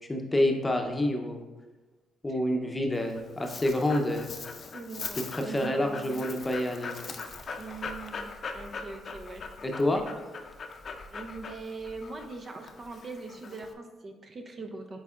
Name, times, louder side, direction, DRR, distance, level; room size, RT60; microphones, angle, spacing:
voice 1, 0.1-1.4 2.2-4.3 5.2-7.1 9.6-10.0, left 1 dB, 15° left, 3 dB, 0.8 m, -28 dB
Dog, 2.9-13.7, left 5 dB, 50° left, 0.5 m, -41 dB
voice 2, 4.7-6.3 7.6-9.5 9.7-10.0 11.1-15.0, right 3 dB, 40° right, 4 dB, 0.6 m, -42 dB
8.1 x 4.7 x 2.5 m, 1.2 s
cardioid pair, 90°, 0 cm